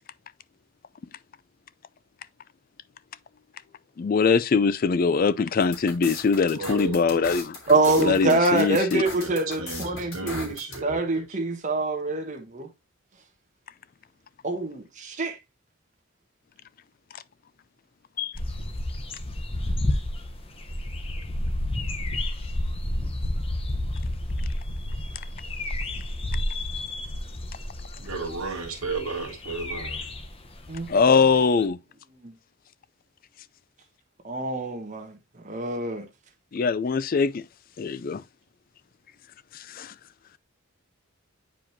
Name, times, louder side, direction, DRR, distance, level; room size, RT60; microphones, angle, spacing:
voice 1, 4.0-7.6 8.0-9.0 17.1-17.2 18.2-18.3 30.9-31.8 36.5-37.5 37.8-38.2 39.5-39.9, left 5 dB, 40° left, 0.4 m, -22 dB
sound 1, 5.6-10.8, left 3 dB, 90° left, 3.0 m, -38 dB
voice 2, 6.5-7.0 7.8-8.1 9.2-11.4 28.0-30.1, right 4 dB, 80° right, 2.0 m, -34 dB
voice 3, 7.7-12.7 14.4-15.4 30.7-31.0 32.2-32.3 34.2-35.2 35.4-36.1, right 2 dB, 35° right, 1.3 m, -25 dB
sound 2, 18.3-31.3 31.6-31.7, left 1 dB, 25° left, 0.8 m, -31 dB
9.1 x 5.0 x 2.7 m
head